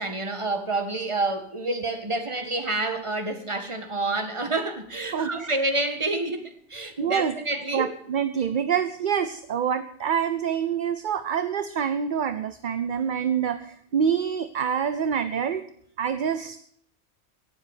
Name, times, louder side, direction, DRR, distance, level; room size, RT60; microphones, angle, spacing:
voice 1, 0.0-7.9, right 2 dB, 25° right, 7 dB, 1.7 m, -28 dB
voice 2, 5.1-5.6 7.0-7.4 7.7-15.7 16.0-16.6, right 7 dB, 45° right, 11 dB, 0.8 m, -26 dB
17.5 x 7.9 x 8.2 m, 0.64 s
omnidirectional pair, 1.3 m